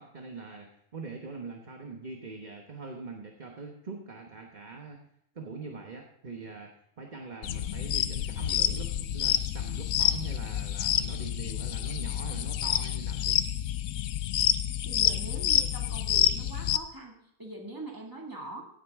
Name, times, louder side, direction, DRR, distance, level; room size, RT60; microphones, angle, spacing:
voice 1, 0.0-5.0 5.3-13.4, right 4 dB, 35° right, 2 dB, 1.2 m, -43 dB
sound 1, 7.4-16.8, left 11 dB, 75° left, 1.0 m, -28 dB
voice 2, 14.8-18.7, right 1 dB, 15° right, 0 dB, 2.1 m, -42 dB
16.0 x 9.0 x 3.6 m, 0.74 s
omnidirectional pair, 1.5 m